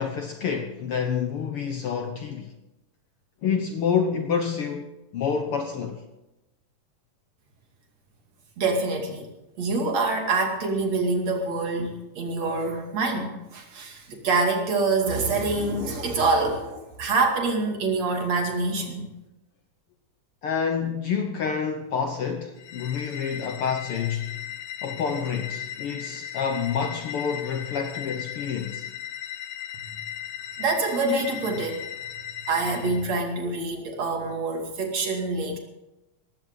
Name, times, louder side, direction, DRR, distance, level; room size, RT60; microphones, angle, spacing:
voice 1, 0.0-2.5 3.4-6.0 15.5-15.9 20.4-24.4 24.8-28.9, left 6 dB, 65° left, 1.5 m, -28 dB
voice 2, 8.6-9.3 9.6-19.1 30.6-31.8 32.5-35.6, right 3 dB, 60° right, 3.6 m, -26 dB
sound 1, 22.6-33.1, left 10 dB, 80° left, 2.4 m, -37 dB
19.0 x 15.5 x 3.9 m
omnidirectional pair, 3.5 m